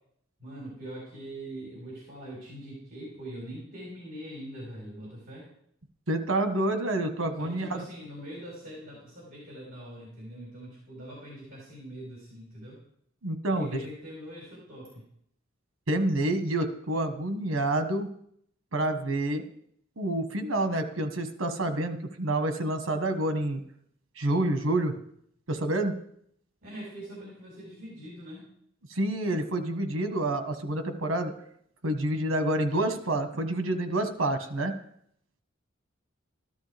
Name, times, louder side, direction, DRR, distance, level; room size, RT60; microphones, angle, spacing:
voice 1, 0.4-5.4 7.4-12.8 13.5-15.0 26.6-28.5, equal, 50° right, -5 dB, 4.6 m, -43 dB
voice 2, 6.1-7.8 13.2-13.8 15.9-18.1 18.7-19.4 20.0-23.6 24.2-24.9 25.5-26.0 28.9-31.3 31.8-34.7, right 1 dB, 80° right, 7 dB, 1.4 m, -28 dB
13.5 x 12.5 x 3.5 m, 0.69 s
head